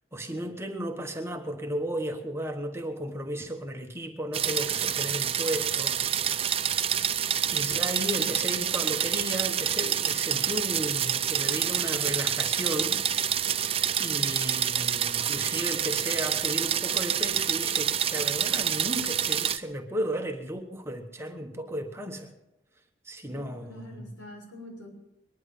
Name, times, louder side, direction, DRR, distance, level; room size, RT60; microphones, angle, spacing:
voice 1, 0.1-6.6 7.5-13.0 14.0-22.3 23.0-24.1, right 1 dB, 15° right, 4 dB, 1.2 m, -34 dB
sound 1, 4.3-19.6, right 9 dB, 30° right, 0.6 m, -27 dB
voice 2, 23.3-24.9, left 1 dB, 70° left, -1 dB, 6.4 m, -46 dB
22.5 x 10.5 x 5.5 m, 0.92 s
head